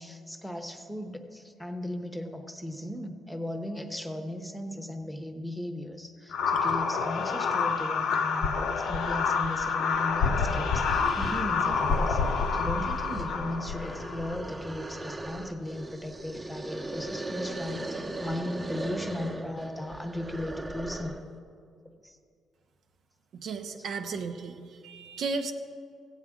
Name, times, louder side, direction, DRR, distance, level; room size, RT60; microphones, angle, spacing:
voice 1, 0.0-21.1 22.0-22.2 23.8-23.9, left 1 dB, 5° left, 5 dB, 0.9 m, -37 dB
sound 1, 6.3-14.4, left 5 dB, 80° left, 0.7 m, -28 dB
sound 2, 10.1-10.2 10.5-21.3, right 2 dB, 25° right, 0.9 m, -39 dB
voice 2, 23.3-25.5, right 4 dB, 65° right, 6 dB, 0.6 m, -34 dB
15.0 x 8.2 x 3.7 m, 2.3 s
cardioid pair, 90°, 0 cm